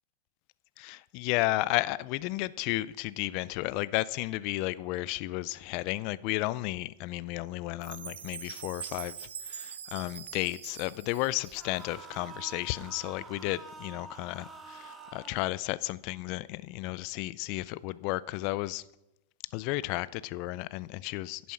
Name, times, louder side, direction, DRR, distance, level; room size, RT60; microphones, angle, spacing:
voice 1, 0.8-18.8 19.5-21.5, left 18 dB, 50° left, 0.4 m, -33 dB
Chime, 7.8-12.0, right 8 dB, 80° right, 0.8 m, -43 dB
sound 1, 11.5-15.5, right 3 dB, 15° right, 1.6 m, -47 dB
11.0 x 7.1 x 5.7 m
hypercardioid pair, 110°, 0 cm